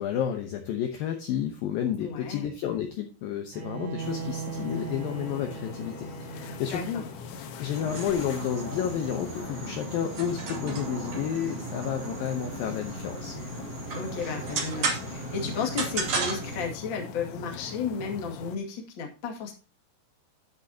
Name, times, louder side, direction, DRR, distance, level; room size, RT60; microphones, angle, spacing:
voice 1, 0.0-7.0 7.6-13.4, left 9 dB, 70° left, 5 dB, 2.3 m, -31 dB
voice 2, 2.0-2.5 6.7-7.0 13.9-19.5, left 5 dB, 35° left, 1 dB, 2.0 m, -33 dB
Bowed string instrument, 3.5-9.6, right 8 dB, 75° right, 4.4 m, -40 dB
sound 1, 4.0-18.6, left 6 dB, 90° left, 3.5 m, -42 dB
sound 2, 7.7-16.7, right 3 dB, 40° right, 2.9 m, -34 dB
10.5 x 9.9 x 2.8 m, 0.33 s
omnidirectional pair, 5.1 m